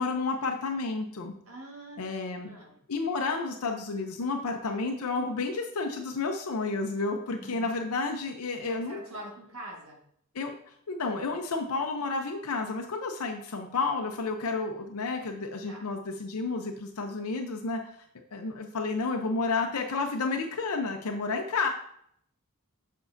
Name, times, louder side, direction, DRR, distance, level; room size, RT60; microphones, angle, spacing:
voice 1, 0.0-1.3 2.0-2.5 2.9-9.0 10.3-10.5 10.9-18.0 18.3-21.7, left 3 dB, 85° left, 3 dB, 0.6 m, -31 dB
voice 2, 1.5-2.0 2.4-2.8 7.4-7.7 8.6-10.0 15.7-15.9, right 1 dB, 70° right, -2 dB, 1.7 m, -44 dB
7.1 x 5.4 x 2.6 m, 0.69 s
head